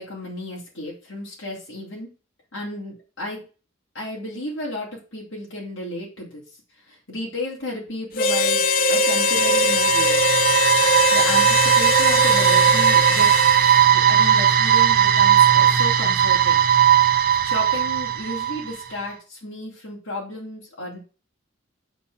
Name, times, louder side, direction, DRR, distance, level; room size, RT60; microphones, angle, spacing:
voice 1, 0.0-2.1 2.5-3.4 3.9-6.4 6.9-10.2 11.1-16.7 17.4-21.0, left 1 dB, 65° left, -4 dB, 3.0 m, -33 dB
Harmonica, 8.2-13.8, left 3 dB, 45° left, 0.5 m, -21 dB
sound 1, 8.8-18.8, right 9 dB, 45° right, 0.7 m, -18 dB
6.8 x 4.4 x 6.3 m, 0.35 s
head